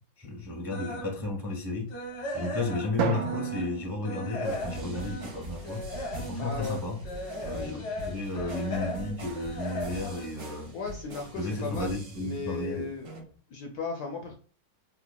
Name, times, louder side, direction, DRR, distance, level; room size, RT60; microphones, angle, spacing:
voice 1, 0.2-1.9 2.3-5.8 6.1-7.0 7.4-10.8 11.3-12.9, left 2 dB, 25° right, 0.5 m, -33 dB
sound 1, 0.7-1.2 1.6-3.8 4.0-11.3 11.6-11.9 12.4-12.5 12.8-12.9, equal, 85° left, 1.9 m, -37 dB
Drum, 3.0-5.3, right 7 dB, 75° right, 1.3 m, -33 dB
sound 2, 4.4-12.6 13.1-13.2, right 1 dB, 60° right, 1.8 m, -43 dB
voice 2, 6.4-6.8 7.5-7.8 10.7-13.1 13.5-14.3, left 4 dB, 70° left, 1.0 m, -36 dB
5.7 x 2.1 x 2.3 m
omnidirectional pair, 2.1 m